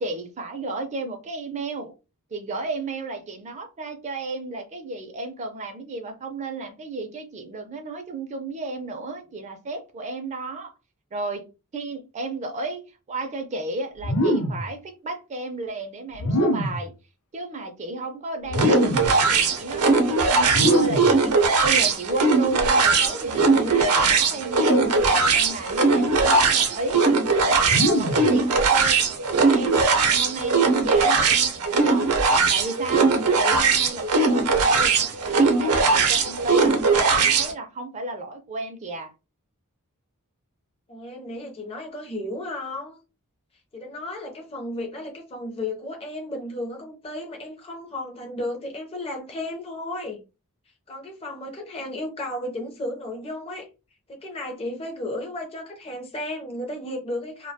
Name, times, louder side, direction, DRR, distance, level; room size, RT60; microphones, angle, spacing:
voice 1, 0.0-1.9 2.3-10.7 11.1-11.4 11.7-12.8 13.1-16.9 17.3-27.1 27.4-29.0 29.3-32.2 32.5-39.1, right 3 dB, 30° right, 0.4 m, -33 dB
sound 1, 14.0-14.7 16.2-16.9 18.5-19.2 20.5-21.2 22.7-23.1 24.5-25.0 26.2-26.5 27.6-28.3, equal, 75° left, 0.6 m, -24 dB
sound 2, 18.5-37.5, right 4 dB, 80° right, 0.6 m, -20 dB
voice 2, 40.9-43.0 43.7-50.2 50.9-53.7 54.1-57.5, left 1 dB, 25° left, 0.5 m, -34 dB
2.2 x 2.1 x 2.7 m
head